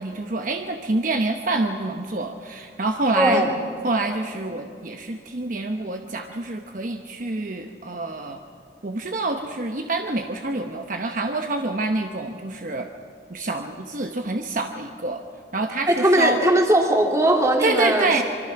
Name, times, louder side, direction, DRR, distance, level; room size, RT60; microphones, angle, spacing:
voice 1, 0.0-3.4 3.8-8.4 8.8-12.9 13.3-15.2 15.5-16.4 17.6-18.2, right 2 dB, 45° right, 4 dB, 1.0 m, -27 dB
voice 2, 3.1-3.5 15.9-18.2, right 1 dB, 20° right, 1 dB, 2.8 m, -19 dB
25.5 x 24.0 x 5.9 m, 2.4 s
head